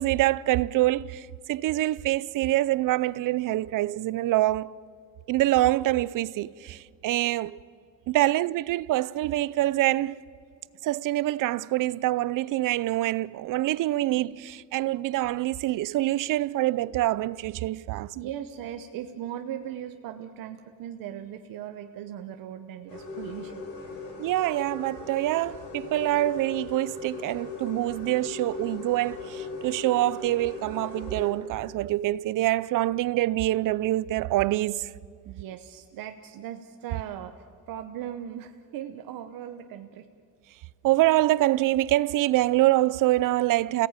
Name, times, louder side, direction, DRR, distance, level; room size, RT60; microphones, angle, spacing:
voice 1, 0.0-4.7 5.3-7.6 8.1-10.2 10.8-18.1 24.2-34.9 40.8-43.9, right 16 dB, 70° right, 0.6 m, -25 dB
voice 2, 18.1-24.1 35.2-40.1, right 10 dB, 85° right, 1.0 m, -39 dB
sound 1, 22.9-31.3, left 3 dB, 85° left, 4.9 m, -39 dB
29.5 x 17.5 x 8.9 m
cardioid pair, 155°, 33 cm